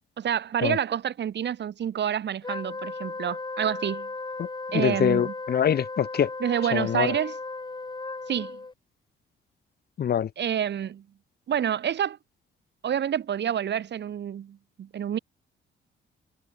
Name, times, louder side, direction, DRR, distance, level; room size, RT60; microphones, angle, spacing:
voice 1, 0.2-4.1 4.7-5.3 6.4-7.4 8.3-8.6 10.4-11.0 11.5-12.2 12.8-15.2, right 9 dB, 60° right, 6.6 m, -28 dB
Wind instrument woodwind instrument, 2.4-8.7, left 3 dB, 20° left, 5.5 m, -36 dB
voice 2, 4.7-6.3 6.7-7.1 10.0-10.3, left 9 dB, 55° left, 1.3 m, -24 dB
cardioid pair, 90°, 20 cm